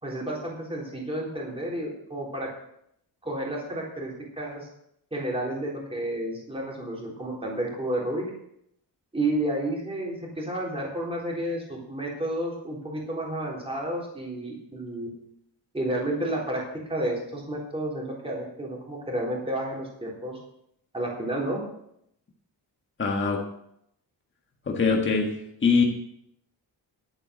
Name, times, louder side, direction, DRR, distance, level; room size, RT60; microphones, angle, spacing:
voice 1, 0.0-2.5 3.2-4.7 5.1-8.3 9.1-15.1 15.7-16.6 16.9-20.4 20.9-21.6, right 1 dB, 15° right, -3 dB, 3.8 m, -31 dB
voice 2, 23.0-23.4 24.7-25.3 25.6-25.8, left 5 dB, 25° left, 0 dB, 1.6 m, -22 dB
11.5 x 8.5 x 6.4 m, 0.74 s
wide cardioid pair, 155°, 43 cm